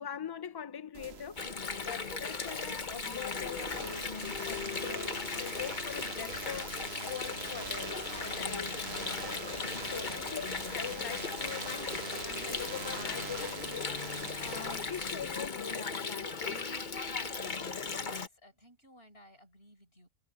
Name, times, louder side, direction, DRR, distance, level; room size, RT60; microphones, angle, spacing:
voice 1, 0.0-4.1 4.5-8.7 9.1-16.8, left 8 dB, 25° left, 0.6 m, -43 dB
sound 1, 0.9-15.5, right 6 dB, 75° right, 1.3 m, -45 dB
Water, 1.4-18.3, left 4 dB, 45° left, 1.3 m, -37 dB
sound 2, 3.4-16.3 16.5-17.7, right 3 dB, 20° right, 1.1 m, -53 dB
voice 2, 18.1-20.1, equal, 65° left, 7.2 m, -58 dB
omnidirectional pair, 1.1 m